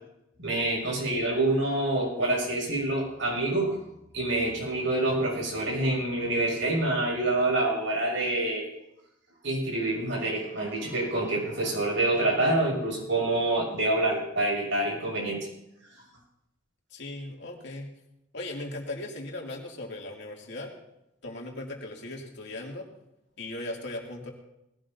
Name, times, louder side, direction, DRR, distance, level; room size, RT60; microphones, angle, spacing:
voice 1, 0.4-3.8 4.1-8.7 9.4-15.5, right 2 dB, 65° right, -2 dB, 6.8 m, -27 dB
voice 2, 16.9-17.9 18.3-20.7 21.2-22.9 23.4-24.3, left 2 dB, 60° left, 0 dB, 2.7 m, -38 dB
20.0 x 16.5 x 2.8 m, 0.83 s
head